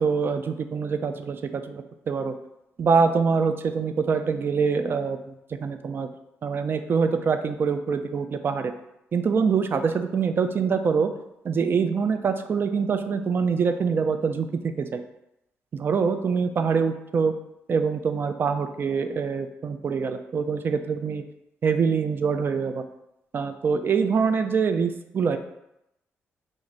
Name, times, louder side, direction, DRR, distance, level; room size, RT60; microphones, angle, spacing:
voice 1, 0.0-2.3 2.8-5.2 5.6-6.1 6.4-8.7 9.1-11.1 11.4-14.5 14.8-15.0 15.7-17.3 17.7-21.2 21.6-22.8 23.3-25.4, right 5 dB, 45° right, 8 dB, 0.4 m, -24 dB
3.0 x 2.5 x 4.0 m, 0.83 s
cardioid pair, 80°, 5 cm